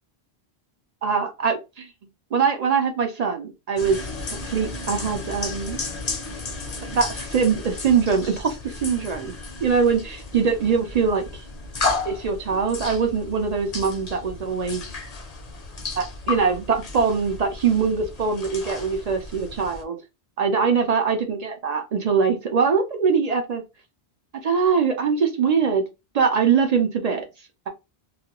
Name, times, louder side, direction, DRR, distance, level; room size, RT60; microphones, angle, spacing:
voice 1, 1.0-1.9 2.3-4.1 4.4-5.8 6.9-9.3 9.6-11.4 12.0-14.8 16.0-20.0 20.4-23.6 24.4-25.8 26.1-27.3, right 6 dB, 50° right, 4 dB, 0.5 m, -22 dB
sound 1, 3.8-19.8, left 3 dB, 45° left, 0.6 m, -33 dB
2.4 x 2.2 x 2.9 m, 0.25 s
omnidirectional pair, 1.1 m